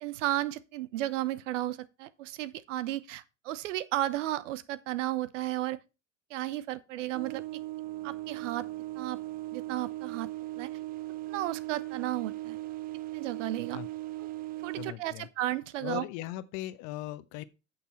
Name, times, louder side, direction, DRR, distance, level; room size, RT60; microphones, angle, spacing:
voice 1, 0.0-5.8 6.3-7.4 8.0-8.6 9.0-9.2 9.5-10.3 10.6-10.7 11.3-12.6 13.1-13.8 14.6-16.0, right 14 dB, 65° right, 0.8 m, -33 dB
sound 1, 7.1-14.9, right 17 dB, 25° right, 0.4 m, -38 dB
voice 2, 14.8-15.3 15.8-17.4, left 15 dB, 50° left, 0.9 m, -38 dB
8.2 x 6.7 x 4.3 m
hypercardioid pair, 85°, 40 cm